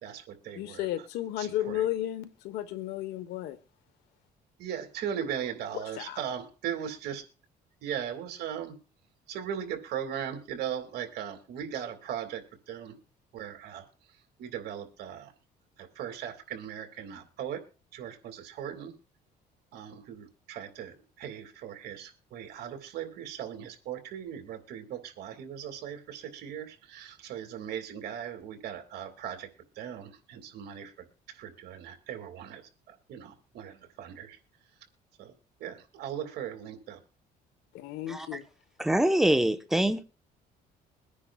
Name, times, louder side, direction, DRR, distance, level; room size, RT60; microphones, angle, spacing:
voice 1, 0.0-0.9 1.4-1.9 4.6-7.2 7.8-8.8 9.3-13.0 13.3-13.9 14.4-15.3 15.8-17.6 17.9-18.9 19.7-29.5 29.8-32.6 32.9-34.4 35.2-35.3 35.6-37.0, right 9 dB, 75° right, 2.3 m, -38 dB
voice 2, 0.5-3.6 5.7-6.2 37.7-38.4, left 13 dB, 90° left, 1.2 m, -33 dB
voice 3, 38.8-40.0, right 1 dB, ahead, 1.0 m, -24 dB
22.5 x 9.9 x 2.4 m
cardioid pair, 110°, 17 cm